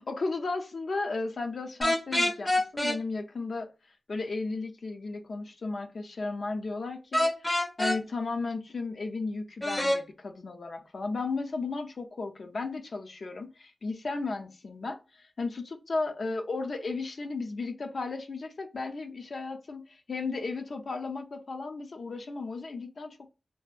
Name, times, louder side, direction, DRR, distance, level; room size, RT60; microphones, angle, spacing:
voice 1, 0.0-3.7 4.1-7.5 7.8-23.3, left 3 dB, 65° left, 0.4 m, -34 dB
sound 1, 1.8-3.0 7.1-8.0 9.6-10.0, left 1 dB, 15° left, 0.5 m, -26 dB
2.6 x 2.2 x 2.4 m
wide cardioid pair, 120°, 0 cm